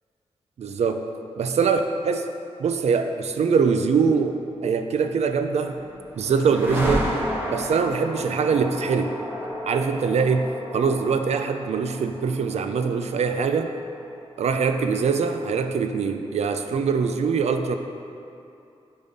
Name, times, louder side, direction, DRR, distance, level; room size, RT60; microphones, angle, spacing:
voice 1, 0.6-1.0 1.4-2.3 2.6-4.4 4.6-5.8 6.2-7.1 7.5-9.1 9.7-10.5 10.7-13.7 14.4-17.8, right 5 dB, 70° right, 7 dB, 0.5 m, -23 dB
sound 1, 5.5-15.3, equal, 20° right, 1.2 m, -33 dB
8.6 x 5.4 x 4.1 m, 2.7 s
wide cardioid pair, 180°, 11 cm